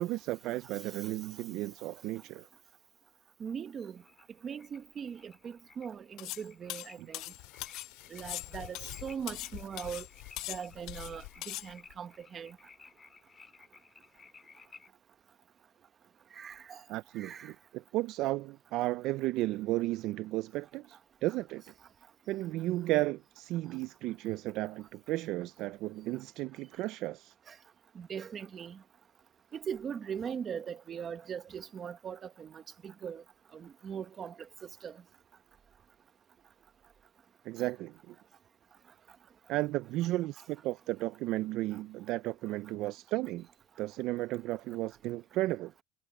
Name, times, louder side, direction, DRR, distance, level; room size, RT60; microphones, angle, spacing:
voice 1, 0.0-2.5 7.0-7.1 16.9-21.6 22.3-27.3 37.4-38.1 39.5-43.5 43.8-45.7, right 17 dB, 55° right, 0.4 m, -34 dB
voice 2, 3.4-4.0 4.4-7.2 8.1-10.1 10.5-12.6 16.3-16.8 17.2-17.5 27.9-28.8 29.5-33.2 33.5-34.3 34.6-34.9, right 7 dB, 30° right, 1.3 m, -40 dB
sound 1, 4.0-14.9, left 5 dB, 20° left, 3.7 m, -58 dB
sound 2, 6.2-6.4 6.7-7.9 8.2-9.5 9.8-10.1 10.4-11.1 11.4-11.7, left 17 dB, 55° left, 0.4 m, -40 dB
sound 3, 7.2-12.0, left 31 dB, 80° left, 5.2 m, -49 dB
cardioid pair, 150°, 0 cm